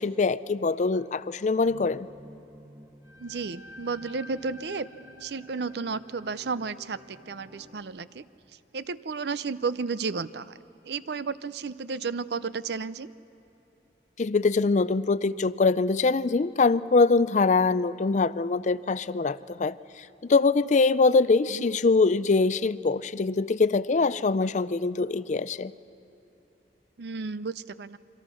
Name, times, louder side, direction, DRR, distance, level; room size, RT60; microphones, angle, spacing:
voice 1, 0.0-2.1 14.2-25.7, left 4 dB, 45° left, 17 dB, 0.4 m, -23 dB
sound 1, 1.6-7.8, left 1 dB, 20° right, 1.4 m, -49 dB
voice 2, 3.2-4.9 5.2-8.2 8.7-10.6 10.9-13.1 21.5-21.6 27.0-28.0, right 4 dB, 65° right, 16 dB, 0.6 m, -33 dB
27.5 x 24.0 x 6.3 m, 2.9 s
head